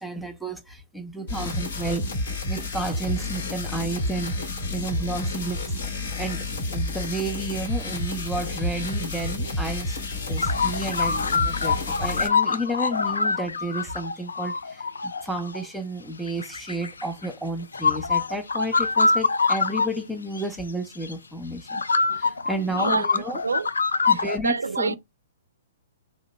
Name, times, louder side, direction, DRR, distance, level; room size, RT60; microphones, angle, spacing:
voice 1, 0.0-2.1 2.5-5.7 6.2-6.4 6.7-10.0 10.3-14.8 15.2-21.8 22.2-23.4 24.1-25.0, right 1 dB, ahead, 0.6 m, -31 dB
sound 1, 1.3-12.3, left 2 dB, 70° left, 1.1 m, -30 dB
sound 2, 10.4-15.6 16.3-17.3 17.7-19.9 20.4-20.5 21.0-21.1 21.7-24.4, left 4 dB, 90° left, 0.3 m, -24 dB
voice 2, 22.0-23.7 24.0-25.0, right 4 dB, 90° right, 0.3 m, -29 dB
2.9 x 2.1 x 4.0 m
hypercardioid pair, 130°, 0 cm